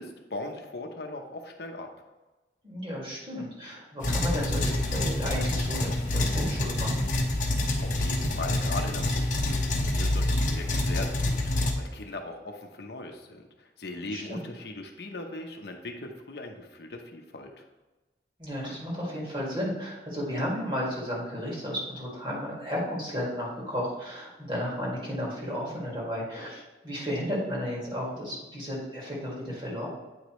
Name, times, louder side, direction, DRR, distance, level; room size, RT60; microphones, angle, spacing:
voice 1, 0.0-1.9 7.8-17.6, left 2 dB, 70° left, 3 dB, 0.8 m, -39 dB
voice 2, 2.6-7.1 14.1-14.4 18.4-29.9, equal, 25° right, -5 dB, 2.1 m, -33 dB
sound 1, 4.0-11.7, left 1 dB, 45° left, 0.9 m, -27 dB
8.7 x 5.0 x 3.1 m, 1.2 s
head